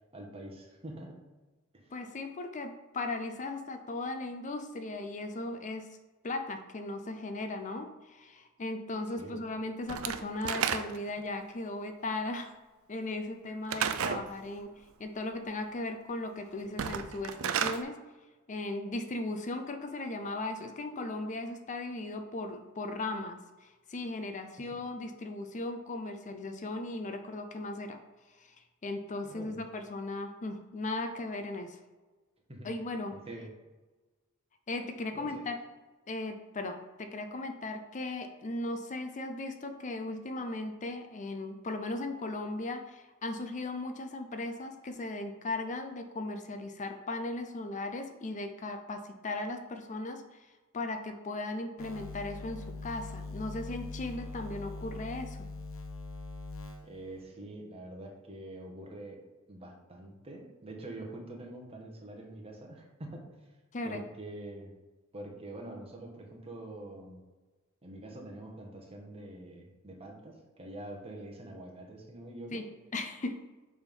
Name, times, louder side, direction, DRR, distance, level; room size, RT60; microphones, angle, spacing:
voice 1, 0.1-1.2 1.7-1.9 9.2-9.4 24.6-24.8 29.2-29.6 32.5-32.7 33.1-33.5 35.1-35.4 56.8-59.2 59.5-63.2 63.8-64.7 65.1-67.2 67.8-72.6, right 1 dB, 30° right, 0 dB, 1.3 m, -45 dB
voice 2, 1.9-6.0 6.2-12.5 12.9-14.7 15.0-18.0 18.5-28.0 28.4-28.6 28.8-31.8 32.6-33.2 34.7-35.6 36.1-50.5 50.7-55.5 63.7-64.0 72.5-72.6 72.9-73.4, left 2 dB, 35° left, 7 dB, 0.5 m, -37 dB
Slam / Wood, 9.9-11.2 13.7-14.3 16.7-17.8, right 8 dB, 75° right, 0.5 m, -32 dB
sound 1, 51.8-57.2, left 3 dB, 75° left, 1.0 m, -42 dB
7.2 x 3.6 x 5.3 m, 1.2 s
head